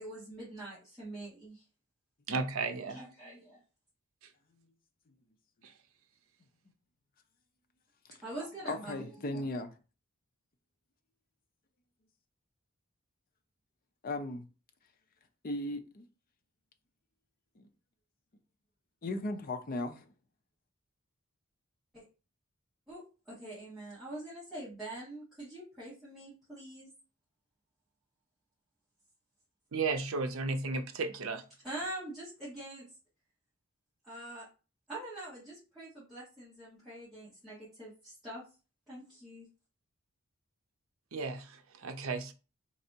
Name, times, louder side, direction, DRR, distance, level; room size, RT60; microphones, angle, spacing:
voice 1, 0.0-1.6 2.9-3.6 8.2-9.5 21.9-22.0 22.9-23.0 23.3-26.9 31.6-32.9 34.1-34.5 34.9-38.4 38.9-39.5, right 1 dB, ahead, 2.1 m, -44 dB
voice 2, 2.3-3.0 5.6-5.7 29.7-31.4 41.1-42.3, right 4 dB, 75° right, 0.6 m, -34 dB
voice 3, 8.6-9.7 14.0-14.5 15.4-16.1 17.6-17.7 19.0-20.1, left 2 dB, 45° left, 0.5 m, -36 dB
4.1 x 3.3 x 2.8 m
head